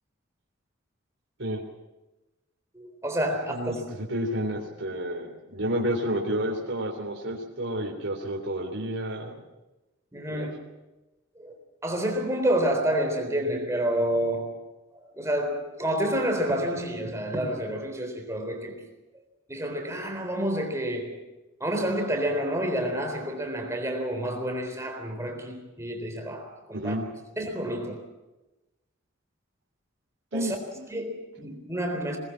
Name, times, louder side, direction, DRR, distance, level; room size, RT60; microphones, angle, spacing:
voice 1, 2.7-3.8 10.1-10.5 11.4-11.5 11.8-14.5 14.9-18.8 19.5-21.2 21.6-27.0 27.4-28.0 30.3-30.6 30.9-32.2, right 1 dB, 15° right, 3.8 m, -29 dB
voice 2, 3.5-9.4 10.3-10.5 26.7-27.0 30.3-30.5, right 1 dB, 70° right, 3.4 m, -30 dB
22.0 x 20.0 x 7.5 m
head